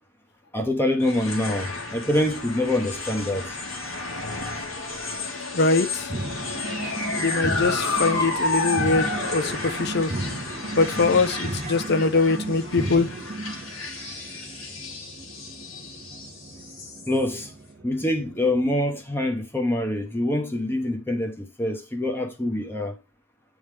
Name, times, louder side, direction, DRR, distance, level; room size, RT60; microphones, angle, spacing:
voice 1, 0.5-3.6 17.1-17.5 17.8-23.0, left 1 dB, 10° left, 0.9 m, -25 dB
sound 1, 1.0-17.5, left 3 dB, 85° left, 1.6 m, -31 dB
voice 2, 5.5-6.1 7.2-10.1 10.8-13.1, left 3 dB, 50° left, 0.6 m, -22 dB
sound 2, 6.1-18.7, right 2 dB, 35° right, 0.7 m, -35 dB
9.4 x 3.6 x 3.3 m
head